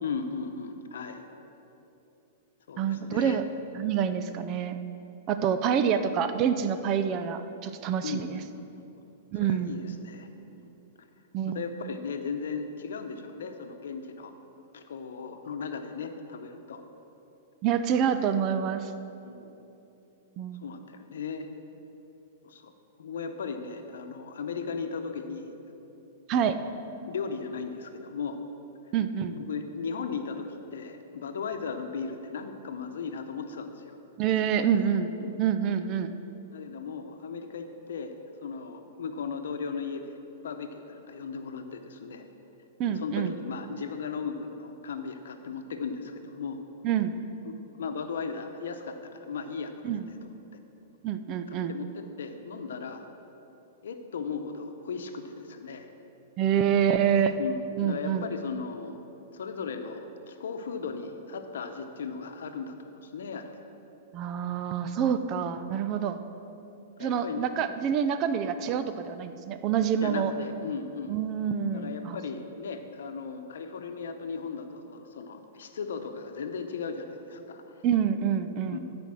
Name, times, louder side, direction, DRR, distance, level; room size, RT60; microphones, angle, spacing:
voice 1, 0.0-1.2 2.7-3.4 5.6-5.8 8.0-8.7 9.4-10.7 11.5-14.3 14.7-16.8 19.2-19.6 20.6-21.5 22.4-22.7 23.0-25.5 26.5-28.4 29.3-34.0 34.2-34.3 35.2-35.3 36.5-38.1 38.4-42.2 42.9-46.6 47.4-50.4 51.5-53.1 53.8-55.9 57.4-59.0 59.3-63.6 65.3-65.4 67.0-67.5 70.0-71.2 71.7-77.8 78.7-78.8, left 5 dB, 80° left, 6 dB, 0.9 m, -37 dB
voice 2, 2.8-3.4 3.8-4.8 5.3-8.4 9.3-9.8 11.3-11.7 17.6-18.9 20.4-20.6 26.3-26.6 28.9-29.3 34.2-35.1 35.4-36.1 42.8-43.3 46.8-47.1 49.8-50.1 51.0-51.7 56.4-57.4 57.8-58.3 64.1-66.2 67.0-70.3 71.1-72.2 77.8-78.8, right 8 dB, 40° right, 10 dB, 0.6 m, -27 dB
13.0 x 5.2 x 6.3 m, 3.0 s
hypercardioid pair, 125°, 0 cm